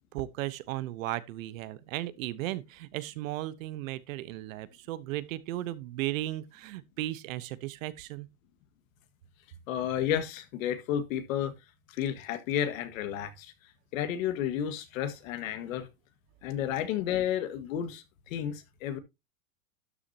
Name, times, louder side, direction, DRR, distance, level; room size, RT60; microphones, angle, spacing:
voice 1, 0.0-8.3, right 16 dB, 65° right, 1.0 m, -36 dB
voice 2, 9.7-11.5 11.9-13.5 13.9-15.9 16.4-19.0, left 10 dB, 65° left, 1.9 m, -32 dB
12.5 x 7.0 x 2.8 m
supercardioid pair, 145°, 43 cm